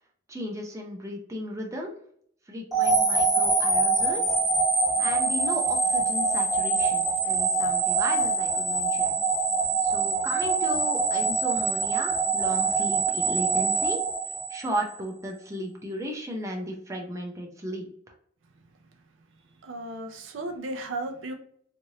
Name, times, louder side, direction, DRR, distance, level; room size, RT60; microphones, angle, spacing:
voice 1, 0.3-1.9 2.5-4.4 5.0-9.1 9.8-14.0 14.5-17.9, equal, 15° right, 0.6 m, -35 dB
sound 1, 2.7-14.9, right 4 dB, ahead, 1.1 m, -24 dB
voice 2, 19.6-21.3, right 2 dB, 75° right, 0.5 m, -35 dB
3.1 x 2.5 x 2.7 m
head